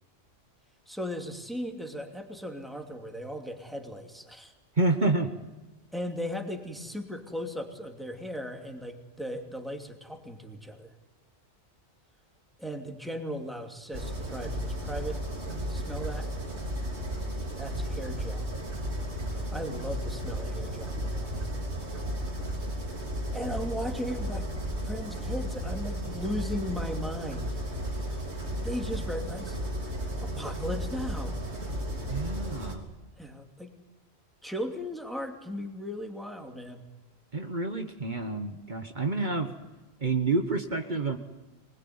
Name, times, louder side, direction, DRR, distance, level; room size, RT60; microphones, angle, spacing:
voice 1, 0.9-4.5 5.9-10.9 12.6-15.2 15.7-16.3 17.5-18.5 19.5-21.5 23.3-24.5 24.8-27.6 28.6-29.6 30.2-31.4 33.2-33.7 34.4-36.8 39.1-39.3, equal, ahead, 3 dB, 2.7 m, -37 dB
voice 2, 4.8-5.3 32.0-32.9 37.3-39.5 40.0-41.2, right 3 dB, 45° right, 5 dB, 1.5 m, -28 dB
sound 1, 13.9-32.8, equal, 80° right, 3.7 m, -34 dB
25.0 x 20.5 x 9.6 m, 1.1 s
omnidirectional pair, 1.1 m